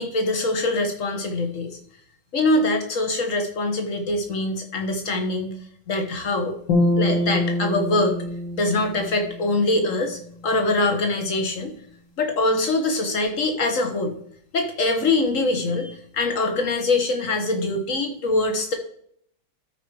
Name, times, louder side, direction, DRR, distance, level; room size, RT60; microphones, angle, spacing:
voice 1, 0.0-1.8 2.3-5.5 5.9-6.5 7.0-8.2 8.5-11.7 12.2-14.2 14.5-18.7, left 2 dB, 45° left, 4 dB, 1.5 m, -23 dB
sound 1, 6.7-10.0, left 1 dB, 60° left, 2.8 m, -25 dB
13.0 x 4.9 x 4.8 m, 0.64 s
omnidirectional pair, 2.1 m